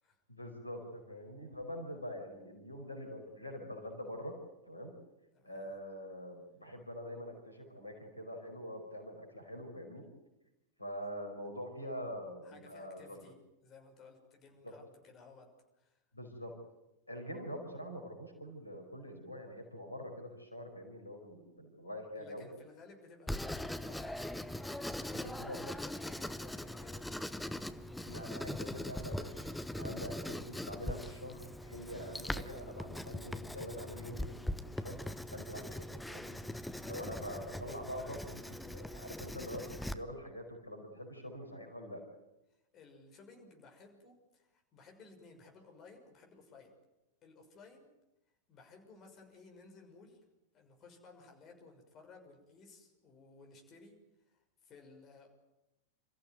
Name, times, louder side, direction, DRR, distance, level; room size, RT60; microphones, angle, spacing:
voice 1, 0.3-4.4 4.6-4.9 5.4-10.1 10.8-13.2 14.6-14.7 16.1-16.5 17.1-22.5 25.1-25.6 28.0-35.0 35.3-36.4 36.8-42.0, equal, 85° left, 4 dB, 5.0 m, -45 dB
voice 2, 5.3-5.7 12.4-13.3 13.6-15.5 15.8-16.0 22.1-27.1 36.8-37.1 42.7-46.7 47.2-47.9 48.5-50.2 50.5-53.9 54.3-55.3, left 4 dB, 30° left, 2 dB, 6.4 m, -57 dB
Writing, 23.3-39.9, left 1 dB, 5° left, 1.2 m, -41 dB
27.5 x 15.0 x 9.4 m, 0.94 s
figure-of-eight pair, 90°, 0 cm